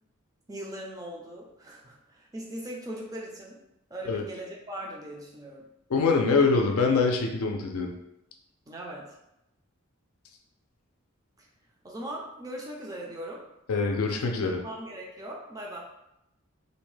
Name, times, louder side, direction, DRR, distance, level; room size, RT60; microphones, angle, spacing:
voice 1, 0.5-3.6 3.9-5.7 8.7-9.1 11.4-11.5 11.8-13.4 14.6-15.8, right 1 dB, 15° right, -2 dB, 0.4 m, -39 dB
voice 2, 5.9-7.9 13.7-14.6, left 4 dB, 85° left, 2 dB, 0.4 m, -24 dB
2.6 x 2.1 x 3.1 m, 0.85 s
head